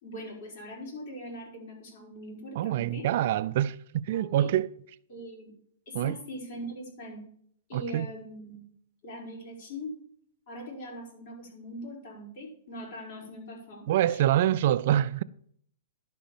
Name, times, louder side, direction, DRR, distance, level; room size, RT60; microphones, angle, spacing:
voice 1, 0.0-3.1 4.1-4.5 5.1-5.5 5.9-7.2 7.7-8.6 9.0-10.0 10.5-14.3, equal, 50° left, 5.1 m, -41 dB
voice 2, 2.6-4.7 5.9-6.2 7.7-8.1 13.9-15.2, right 12 dB, 50° right, 0.4 m, -25 dB
11.0 x 5.2 x 7.1 m
hypercardioid pair, 160°, 0 cm